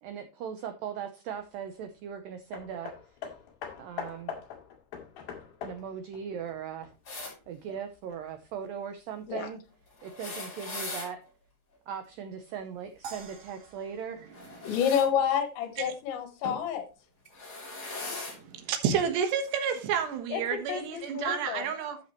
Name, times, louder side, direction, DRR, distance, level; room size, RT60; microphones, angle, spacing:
voice 1, 0.0-2.9 3.8-4.4 5.6-6.9 7.5-9.6 10.0-11.2 11.9-14.2, right 8 dB, 90° right, 1.9 m, -39 dB
Hammer, 2.5-7.3 8.1-8.2, left 7 dB, 60° left, 3.7 m, -42 dB
sound 1, 7.1-7.3 10.0-11.1 14.3-15.1 16.4-16.6 17.3-18.4 19.4-19.5 20.7-20.8, left 2 dB, 30° left, 5.9 m, -39 dB
sound 2, 13.0-15.4, right 5 dB, 60° right, 3.3 m, -48 dB
voice 2, 14.7-16.9 18.1-18.4 20.3-20.4 20.7-21.7, left 8 dB, 80° left, 3.8 m, -29 dB
voice 3, 18.3-22.0, right 7 dB, 75° right, 3.4 m, -30 dB
12.0 x 7.3 x 3.1 m
omnidirectional pair, 5.2 m